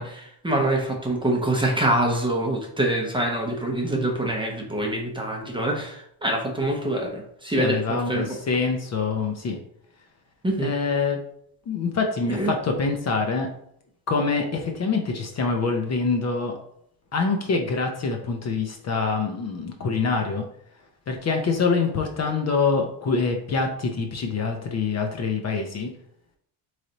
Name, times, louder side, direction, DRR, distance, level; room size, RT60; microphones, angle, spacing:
voice 1, 0.0-8.4 10.4-10.7 12.3-12.5, right 1 dB, 10° right, 0 dB, 0.7 m, -25 dB
voice 2, 7.6-9.6 10.6-11.2 11.7-13.5 14.1-16.6 17.1-20.4 21.1-25.9, left 4 dB, 35° left, 3 dB, 0.6 m, -25 dB
4.1 x 3.2 x 3.9 m, 0.69 s
cardioid pair, 145°, 46 cm